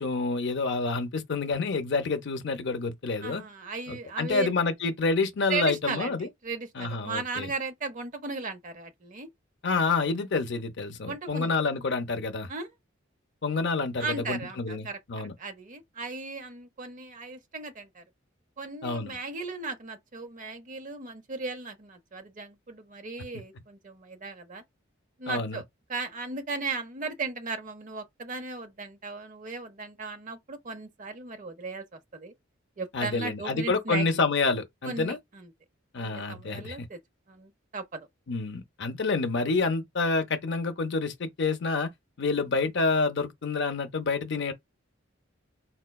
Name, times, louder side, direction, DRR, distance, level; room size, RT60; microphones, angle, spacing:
voice 1, 0.0-3.4 3.9-6.3 6.8-7.5 9.6-12.5 13.4-15.3 18.8-19.1 25.3-25.6 32.9-35.2 35.9-36.9 38.3-41.9 42.2-44.5, left 4 dB, 60° left, 0.6 m, -28 dB
voice 2, 3.2-4.5 5.5-9.3 11.1-11.6 12.5-12.7 14.0-18.0 18.6-24.6 25.2-25.6 25.9-32.3 32.8-34.1 34.8-35.5 36.0-37.0 37.3-38.1, right 4 dB, 40° right, 0.7 m, -36 dB
4.2 x 2.2 x 2.2 m
head